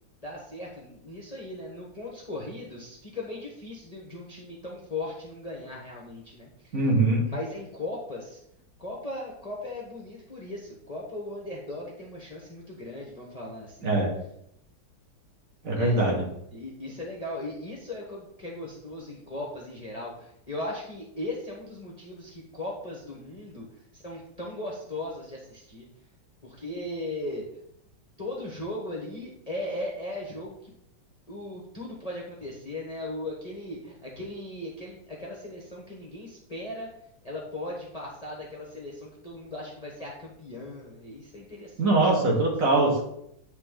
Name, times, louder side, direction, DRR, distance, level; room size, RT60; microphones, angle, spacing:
voice 1, 0.2-6.5 7.2-8.4 8.8-14.0 15.7-16.0 16.5-23.7 23.9-25.9 26.4-27.4 28.2-30.7 31.3-36.9 37.2-42.0 42.3-42.4, left 1 dB, 25° left, -4 dB, 1.0 m, -38 dB
voice 2, 6.7-7.3 13.8-14.1 15.6-16.2 41.8-43.0, right 2 dB, 50° right, -2 dB, 1.6 m, -22 dB
9.3 x 3.3 x 3.7 m, 0.75 s
omnidirectional pair, 2.0 m